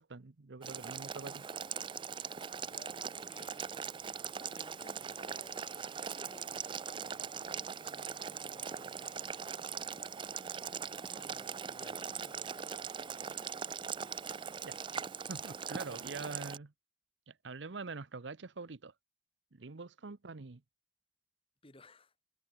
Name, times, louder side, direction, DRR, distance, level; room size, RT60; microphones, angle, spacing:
voice 1, 0.0-1.4 14.6-14.8 15.3-16.7 17.3-18.9 19.5-20.6, right 4 dB, 80° right, 0.9 m, -44 dB
Boiling, 0.6-16.6, right 7 dB, 25° right, 0.4 m, -41 dB
voice 2, 2.7-3.8 4.3-5.7 6.0-10.4 11.0-12.9 15.8-16.3 21.6-22.1, left 1 dB, 30° left, 3.8 m, -59 dB
head